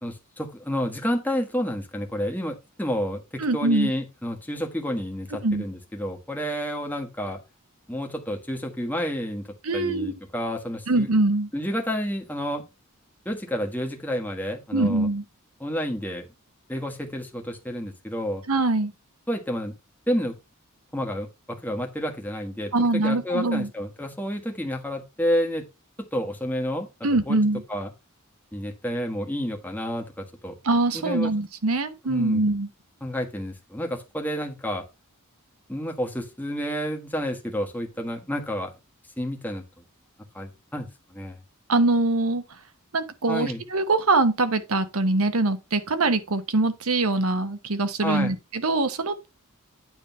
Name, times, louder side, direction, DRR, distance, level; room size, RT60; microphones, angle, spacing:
voice 1, 0.0-7.4 7.9-9.4 9.7-11.1 11.5-12.6 13.2-15.1 15.6-16.3 16.7-18.4 19.3-19.7 20.1-20.3 20.9-25.7 26.1-27.4 27.7-27.9 28.5-30.1 30.4-30.6 30.9-31.3 32.0-32.4 33.0-34.8 35.7-38.7 39.2-39.6 40.3-41.4 43.3-43.6 48.0-48.3, equal, 10° left, 1.5 m, -30 dB
voice 2, 3.4-3.9 5.4-5.6 9.6-10.1 10.9-11.5 14.7-15.2 18.5-18.9 22.7-23.7 27.0-27.6 30.6-32.7 41.7-42.4 42.9-49.3, right 2 dB, 75° right, 1.0 m, -23 dB
9.2 x 3.5 x 5.4 m
head